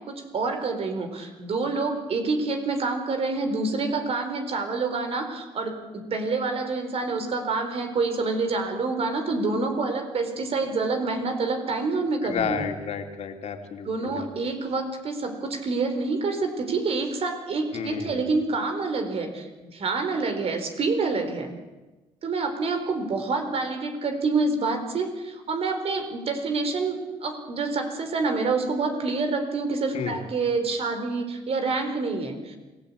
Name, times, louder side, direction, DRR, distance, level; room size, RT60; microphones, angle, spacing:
voice 1, 0.1-12.6 13.9-21.5 22.2-32.6, right 3 dB, 55° right, 6 dB, 4.1 m, -27 dB
voice 2, 12.2-14.3 17.7-18.3 29.9-30.2, left 7 dB, 60° left, 4 dB, 3.2 m, -31 dB
28.0 x 17.0 x 8.6 m, 1.2 s
cardioid pair, 85°, 12 cm